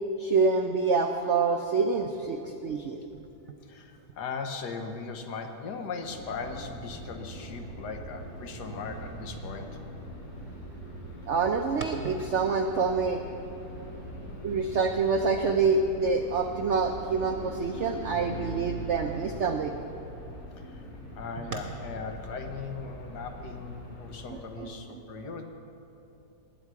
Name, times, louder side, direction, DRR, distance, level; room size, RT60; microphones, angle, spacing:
voice 1, 0.2-3.0 11.3-13.2 14.4-19.8 24.6-24.7, right 4 dB, 70° right, 5 dB, 0.6 m, -26 dB
voice 2, 3.6-9.8 20.6-20.9 21.1-25.4, left 4 dB, 65° left, 5 dB, 1.5 m, -38 dB
sound 1, 5.9-24.6, equal, 85° left, 3.3 m, -42 dB
20.0 x 9.1 x 4.7 m, 2.9 s
omnidirectional pair, 1.9 m